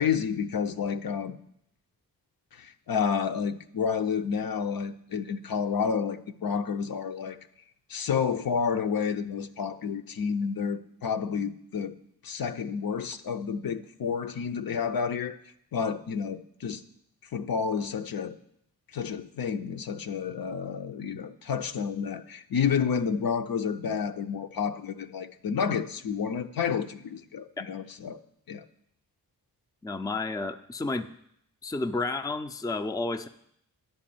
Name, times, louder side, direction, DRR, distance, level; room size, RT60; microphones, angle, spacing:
voice 1, 0.0-1.4 2.5-7.4 7.9-11.9 12.2-15.4 15.7-16.8 17.3-18.4 18.9-28.2 28.5-28.6, left 6 dB, 55° left, 8 dB, 0.7 m, -30 dB
voice 2, 29.8-31.1 31.6-33.3, left 3 dB, 10° left, 8 dB, 0.5 m, -31 dB
10.0 x 4.3 x 7.7 m, 0.73 s
supercardioid pair, 40°, 41 cm